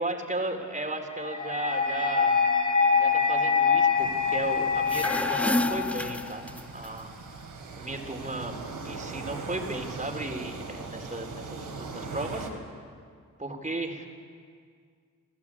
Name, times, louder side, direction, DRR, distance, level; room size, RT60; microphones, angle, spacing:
voice 1, 0.0-2.3 2.9-7.1 7.8-8.6 8.8-12.5 13.4-14.1, right 2 dB, 25° right, 4 dB, 3.8 m, -35 dB
sound 1, 1.2-6.2, left 6 dB, 25° left, 2.9 m, -25 dB
sound 2, 3.9-12.5, right 4 dB, 80° right, 3.7 m, -40 dB
sound 3, 4.7-6.9, left 1 dB, 5° left, 0.6 m, -30 dB
28.0 x 15.5 x 8.6 m, 2.1 s
cardioid pair, 55°, 33 cm